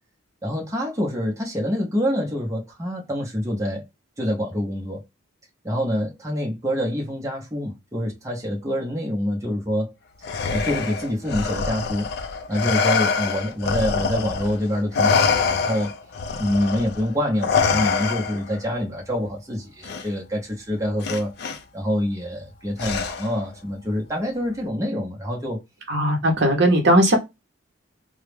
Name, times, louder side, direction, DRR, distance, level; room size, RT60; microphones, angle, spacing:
voice 1, 0.4-3.8 4.2-5.0 5.6-9.9 10.5-12.1 12.5-15.9 16.4-21.3 21.7-25.6, equal, 15° right, 0.6 m, -26 dB
Respiratory sounds, 10.2-14.6 14.9-18.6 19.8-20.0 21.0-21.6 22.8-23.4, left 5 dB, 50° left, 0.3 m, -24 dB
voice 2, 25.9-27.2, right 1 dB, 55° right, 0.7 m, -18 dB
2.2 x 2.0 x 3.1 m
head